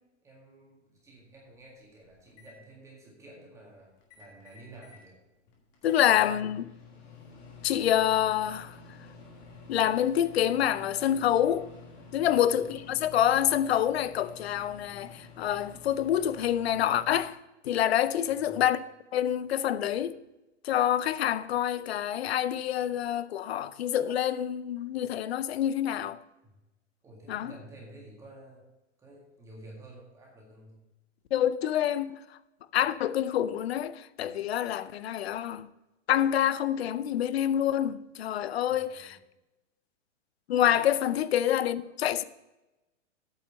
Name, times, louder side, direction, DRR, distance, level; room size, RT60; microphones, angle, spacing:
voice 1, 0.2-5.2 5.8-6.3 12.1-12.4 18.0-18.6 26.4-26.5 27.0-28.7 29.0-30.8 32.7-32.8 38.6-39.2 40.7-40.9, right 1 dB, 10° right, 2.0 m, -51 dB
Microwave oven, 1.0-1.1 1.5-2.5 4.0-5.1 5.4-17.2, left 4 dB, 20° left, 1.5 m, -50 dB
voice 2, 5.8-6.7 7.6-8.8 9.7-11.7 12.1-17.4 17.6-18.8 19.1-20.2 20.6-26.2 27.3-27.5 31.3-32.1 32.7-35.7 36.1-39.2 40.5-42.2, left 11 dB, 60° left, 0.6 m, -27 dB
8.7 x 5.9 x 7.3 m
hypercardioid pair, 165°, 37 cm